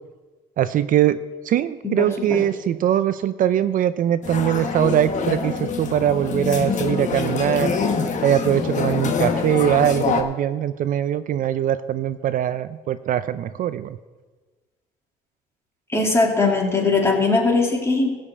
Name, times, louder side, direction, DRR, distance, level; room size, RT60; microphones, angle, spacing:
voice 1, 0.6-1.2 1.4-7.8 8.2-14.0, right 11 dB, 55° right, 13 dB, 0.5 m, -21 dB
voice 2, 1.8-2.4 15.9-18.2, left 3 dB, 15° left, -1 dB, 2.9 m, -20 dB
sound 1, 4.2-10.2, left 5 dB, 45° left, 1.3 m, -25 dB
15.5 x 5.3 x 8.3 m, 1.3 s
cardioid pair, 110°, 17 cm